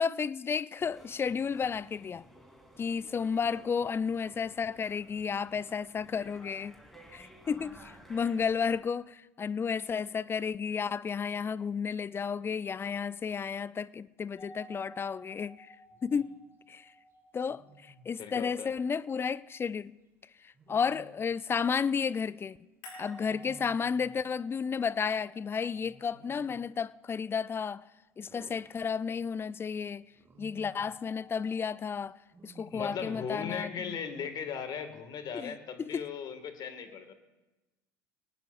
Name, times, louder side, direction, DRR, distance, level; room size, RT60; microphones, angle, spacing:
voice 1, 0.0-2.2 2.8-6.8 7.1-15.7 16.0-16.3 16.7-16.9 17.3-20.0 20.4-22.6 23.0-27.8 28.2-30.1 30.4-32.2 32.4-33.7 35.3-36.0, left 6 dB, 25° left, 0.4 m, -32 dB
sound 1, 0.8-8.8, equal, ahead, 3.4 m, -55 dB
sound 2, 14.4-19.3 22.8-26.9 30.7-31.9, equal, 60° left, 7.4 m, -54 dB
Wild animals, 15.9-16.3 17.5-18.2 20.5-21.5 23.2-24.3 25.8-26.7 28.3-29.4 30.1-31.0 32.3-33.3, right 3 dB, 25° right, 2.1 m, -56 dB
voice 2, 18.2-18.7 32.6-37.1, left 7 dB, 45° left, 2.0 m, -38 dB
25.5 x 18.5 x 2.6 m
hypercardioid pair, 75°, 10 cm